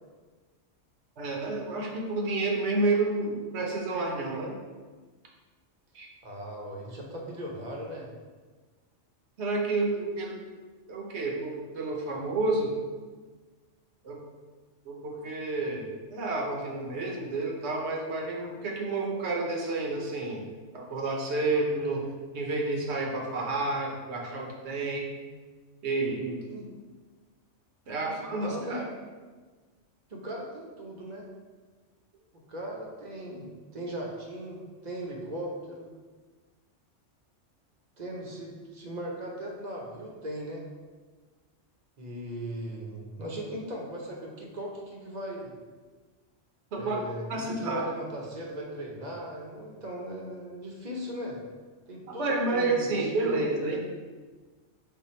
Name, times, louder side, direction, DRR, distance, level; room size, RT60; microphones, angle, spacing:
voice 1, 1.2-4.6 5.9-6.1 9.4-10.4 10.9-12.7 14.0-14.2 14.9-20.5 20.7-22.1 22.3-25.1 25.8-26.4 27.9-28.8 46.7-47.0 47.3-47.8 52.1-53.8, right 3 dB, 65° right, 0 dB, 1.1 m, -30 dB
voice 2, 6.2-8.1 26.5-26.7 28.1-28.8 30.1-31.3 32.3-33.5 33.7-35.9 38.0-40.6 42.0-45.5 46.8-51.4 51.9-53.4, right 1 dB, 40° right, -2 dB, 0.8 m, -38 dB
5.5 x 2.2 x 4.2 m, 1.4 s
omnidirectional pair, 1.2 m